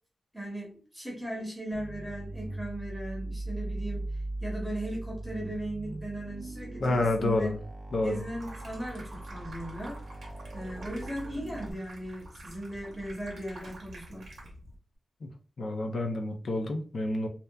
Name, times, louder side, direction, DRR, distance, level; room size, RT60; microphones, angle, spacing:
voice 1, 0.3-7.5 8.0-10.0 10.5-14.3, right 1 dB, 5° right, -3 dB, 0.8 m, -38 dB
sound 1, 1.7-11.7, right 2 dB, 35° right, 0.6 m, -39 dB
voice 2, 6.8-7.6 7.9-8.2 15.2-15.3 15.6-17.3, left 2 dB, 65° left, 4 dB, 0.4 m, -29 dB
Water tap faucet / Sink (filling or washing), 8.3-14.8, right 1 dB, 75° right, 0.7 m, -48 dB
2.7 x 2.2 x 2.2 m, 0.39 s
wide cardioid pair, 120°, 0 cm